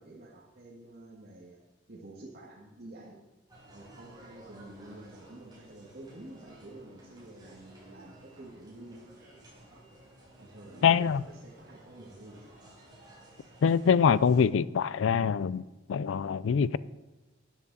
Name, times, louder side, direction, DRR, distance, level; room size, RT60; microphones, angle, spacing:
voice 1, 0.0-1.6 1.9-3.2 3.7-9.2 9.7-9.8 10.4-12.5, right 1 dB, 55° right, 1.7 m, -49 dB
sound 1, 3.5-14.4, right 1 dB, 20° right, 4.2 m, -55 dB
voice 2, 10.8-11.2 13.6-15.6 15.9-16.8, left 6 dB, 80° left, 0.4 m, -24 dB
12.5 x 9.9 x 4.1 m
head